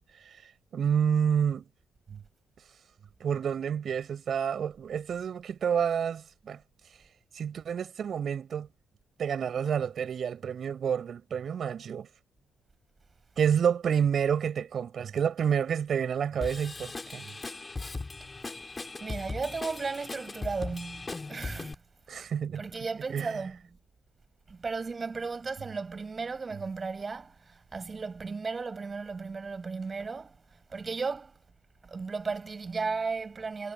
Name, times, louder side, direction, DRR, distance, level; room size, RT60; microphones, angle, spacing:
voice 1, 0.7-1.6 2.1-2.2 3.2-6.6 7.3-8.7 9.2-12.1 13.4-17.2 22.1-22.6 23.1-23.3, right 8 dB, 55° right, 7.4 m, -29 dB
Drum kit / Drum, 16.4-21.7, left 3 dB, 25° left, 4.4 m, -39 dB
voice 2, 19.0-21.8 22.1-22.3 22.6-23.6 24.5-31.3 31.8-33.7, right 4 dB, 30° right, 6.9 m, -35 dB
cardioid pair, 90°, 0 cm